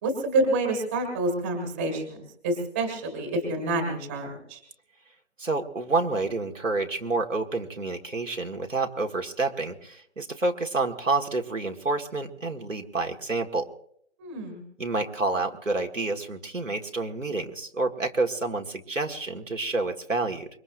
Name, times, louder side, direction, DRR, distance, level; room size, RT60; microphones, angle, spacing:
voice 1, 0.0-2.2 2.4-4.6 14.2-14.6, right 2 dB, 10° right, 4 dB, 1.8 m, -28 dB
voice 2, 5.4-13.7 14.8-20.5, right 3 dB, 80° right, 3 dB, 1.7 m, -28 dB
25.5 x 22.5 x 2.5 m, 0.70 s
figure-of-eight pair, 160°, 38 cm